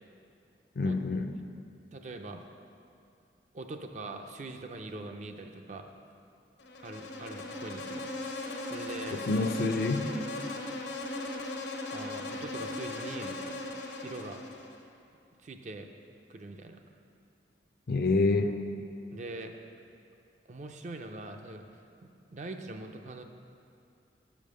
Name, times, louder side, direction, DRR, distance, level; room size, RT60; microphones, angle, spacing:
voice 1, 0.8-1.3 9.1-10.1 17.9-18.5, left 3 dB, 55° left, 7 dB, 0.4 m, -27 dB
voice 2, 1.9-2.4 3.5-5.9 6.8-8.0 8.6-9.2 11.9-13.5 14.0-14.4 15.4-15.9 16.3-16.8 19.1-19.5 20.5-21.6 22.0-23.2, right 2 dB, 40° right, 5 dB, 0.4 m, -42 dB
Insect, 6.6-14.8, left 2 dB, 75° left, 0.8 m, -38 dB
6.7 x 5.2 x 6.5 m, 2.6 s
head